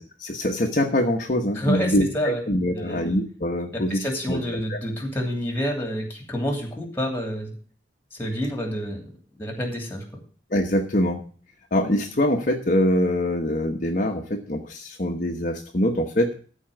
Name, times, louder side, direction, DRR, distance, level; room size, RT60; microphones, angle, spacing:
voice 1, 0.2-4.4 4.7-4.8 10.5-11.2 11.7-16.3, left 1 dB, 45° left, 1 dB, 1.2 m, -24 dB
voice 2, 1.5-2.4 2.7-3.1 3.7-7.6 8.1-10.2, equal, 10° left, 3 dB, 2.8 m, -29 dB
14.0 x 4.6 x 7.7 m, 0.41 s
head